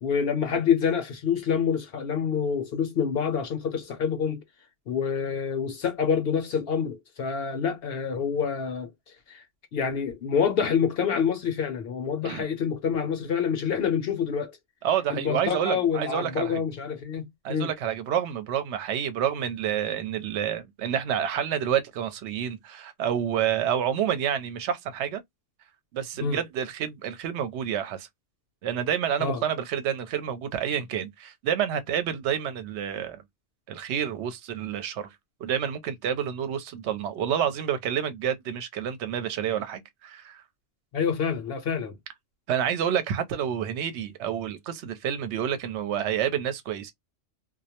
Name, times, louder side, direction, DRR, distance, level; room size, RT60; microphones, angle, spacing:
voice 1, 0.0-4.4 4.9-8.9 9.3-9.4 9.7-14.6 15.1-17.7 26.2-26.4 29.2-29.4 40.9-41.9, left 7 dB, 60° left, 0.7 m, -27 dB
voice 2, 14.8-16.6 17.4-25.2 25.9-28.1 28.6-33.2 33.7-35.2 35.4-40.4 42.5-46.9, right 9 dB, 70° right, 0.9 m, -29 dB
2.2 x 2.0 x 2.7 m
omnidirectional pair, 1.3 m